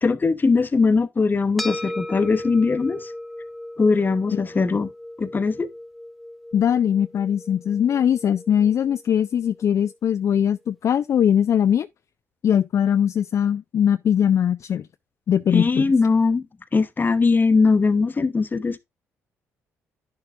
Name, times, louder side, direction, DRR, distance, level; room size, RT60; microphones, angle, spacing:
voice 1, 0.0-3.1 3.8-4.9 5.2-5.7 15.5-16.5 16.7-18.8, left 4 dB, 30° left, 0.9 m, -20 dB
sound 1, 1.6-10.2, left 1 dB, ahead, 0.6 m, -37 dB
voice 2, 6.5-11.9 12.4-14.9 15.3-15.8, left 9 dB, 55° left, 0.3 m, -21 dB
10.5 x 6.7 x 2.5 m
supercardioid pair, 65°, 6 cm